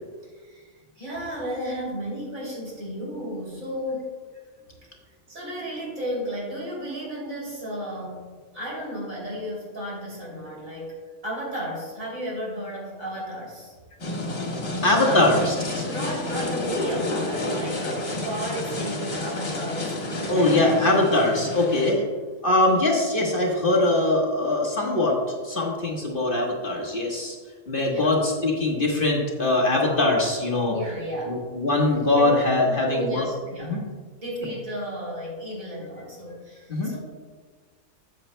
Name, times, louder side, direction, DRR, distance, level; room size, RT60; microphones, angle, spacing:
voice 1, 0.3-4.1 5.3-8.2 8.5-10.9 11.2-13.7 15.0-15.3 15.8-20.6 27.7-28.1 30.7-31.4 32.2-32.3 32.6-33.8 34.2-37.0, equal, 70° right, -4 dB, 3.5 m, -33 dB
sound 1, 14.0-21.9, left 2 dB, 55° left, 2.0 m, -30 dB
voice 2, 14.8-15.8 20.3-22.0 22.4-27.4 27.7-30.7 31.3-33.3 33.6-33.8 36.7-36.9, left 2 dB, 40° left, -2 dB, 1.4 m, -22 dB
13.0 x 8.1 x 2.2 m, 1.5 s
omnidirectional pair, 1.5 m